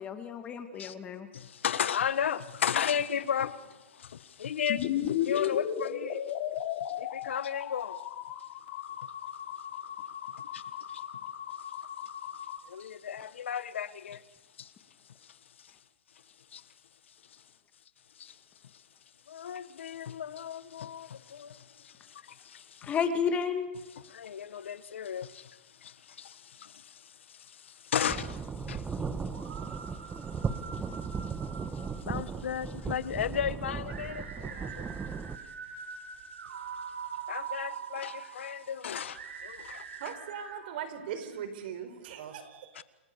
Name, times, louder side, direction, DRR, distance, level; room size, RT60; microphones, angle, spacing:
voice 1, 0.0-1.3 22.8-23.7, left 6 dB, 20° left, 2.3 m, -31 dB
voice 2, 1.3-6.2 6.8-8.0 9.0-9.1 10.5-10.6 10.9-11.0 12.3-14.2 14.6-14.7 15.2-15.7 16.5-16.7 17.3-17.4 18.1-18.8 19.3-22.9 24.0-29.0 29.6-29.7 30.0-30.4 30.7-31.4 31.7-34.9 37.3-40.1 42.7-42.8, left 8 dB, 80° left, 1.5 m, -35 dB
sound 1, 4.7-12.6, left 10 dB, 50° left, 3.3 m, -35 dB
sound 2, 28.1-35.4, right 5 dB, 10° right, 1.4 m, -37 dB
sound 3, 29.3-32.5 33.9-40.6, right 7 dB, 80° right, 4.6 m, -43 dB
voice 3, 40.0-42.7, right 8 dB, 55° right, 5.2 m, -39 dB
29.5 x 27.5 x 7.0 m
hypercardioid pair, 145°, 6 cm